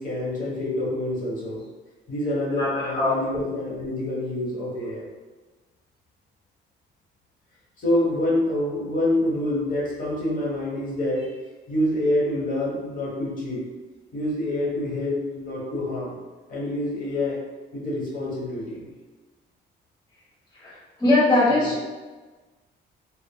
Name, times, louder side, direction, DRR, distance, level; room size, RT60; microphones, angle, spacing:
voice 1, 0.0-1.6 2.1-5.1 7.8-11.4 11.7-13.6 14.1-16.1 16.5-17.4 17.7-18.9 21.6-21.7, left 1 dB, 45° left, -5 dB, 1.1 m, -26 dB
voice 2, 2.6-3.1 20.6-20.7 21.0-21.8, left 2 dB, 20° left, -9 dB, 0.8 m, -20 dB
3.5 x 2.0 x 2.2 m, 1.3 s
cardioid pair, 90°, 20 cm